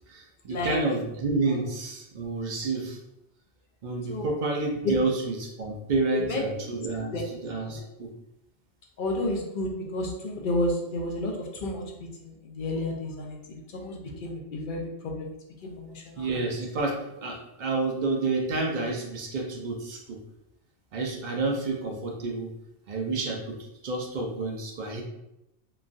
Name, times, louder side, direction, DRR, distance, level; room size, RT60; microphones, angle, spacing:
voice 1, 0.1-3.0 3.8-8.1 16.2-20.2 20.9-22.5 22.9-23.6 23.8-25.0, right 3 dB, 55° right, 1 dB, 0.6 m, -29 dB
voice 2, 6.1-6.5 7.1-7.3 7.6-7.8 9.0-15.4 15.6-16.4, left 1 dB, 60° left, 0 dB, 0.6 m, -31 dB
3.0 x 2.2 x 2.5 m, 0.88 s
omnidirectional pair, 1.1 m